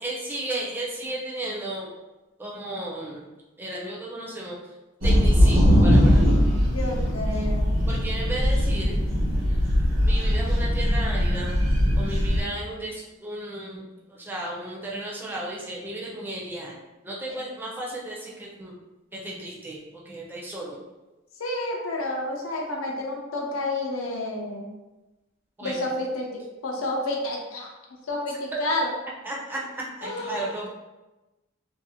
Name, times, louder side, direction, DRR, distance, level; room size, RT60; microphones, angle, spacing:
voice 1, 0.0-1.9 2.4-3.3 3.6-4.6 5.0-6.3 7.8-8.9 10.1-11.6 12.0-18.7 19.1-19.8 20.1-20.8 25.6-25.7 28.5-28.6 29.2-29.6 30.0-30.7, right 1 dB, 10° right, -4 dB, 0.4 m, -34 dB
sound 1, 5.0-12.4, equal, 85° right, 1.0 m, -20 dB
voice 2, 6.7-7.7 21.4-24.7 25.6-27.7 28.1-28.9 30.0-30.5, left 1 dB, 90° left, -1 dB, 0.5 m, -30 dB
2.5 x 2.0 x 2.7 m, 1.1 s
head